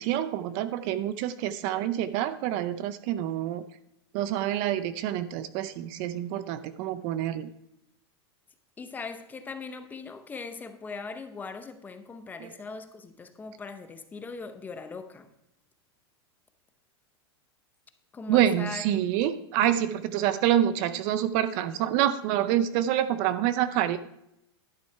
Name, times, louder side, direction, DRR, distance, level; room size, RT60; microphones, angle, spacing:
voice 1, 0.0-3.7 4.1-7.5 12.4-12.5 18.3-24.0, right 11 dB, 40° right, 14 dB, 0.5 m, -27 dB
voice 2, 8.8-15.3 18.1-18.8, left 4 dB, 10° left, 9 dB, 0.6 m, -40 dB
11.5 x 6.3 x 4.6 m, 0.80 s
supercardioid pair, 145°, 14 cm